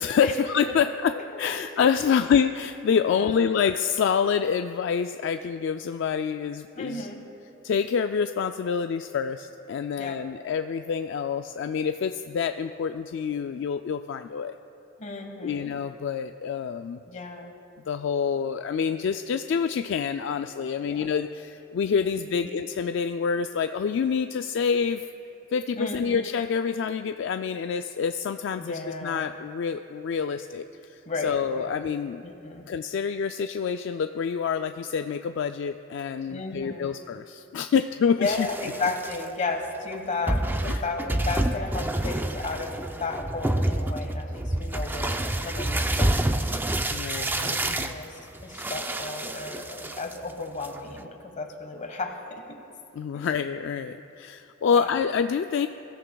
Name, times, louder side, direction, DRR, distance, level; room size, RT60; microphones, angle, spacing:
voice 1, 0.0-7.1 7.6-14.5 15.4-17.0 17.9-25.0 25.5-32.2 32.7-38.5 40.7-40.8 46.9-47.9 52.9-55.7, left 6 dB, 65° left, 8 dB, 0.3 m, -27 dB
voice 2, 1.1-1.5 2.0-2.2 3.1-3.4 6.7-7.2 10.0-10.2 15.0-15.7 17.1-17.6 20.8-21.1 22.0-22.5 25.8-26.2 28.6-29.3 31.0-31.7 32.2-32.7 36.3-36.9 38.2-46.4 47.3-52.6 53.1-53.3 54.7-54.9, left 3 dB, 40° left, 4 dB, 1.3 m, -34 dB
sound 1, 38.2-39.2 39.9-40.0 40.3-50.3 50.6-51.0, right 1 dB, 10° right, 0.4 m, -28 dB
22.0 x 14.0 x 2.3 m, 2.8 s
head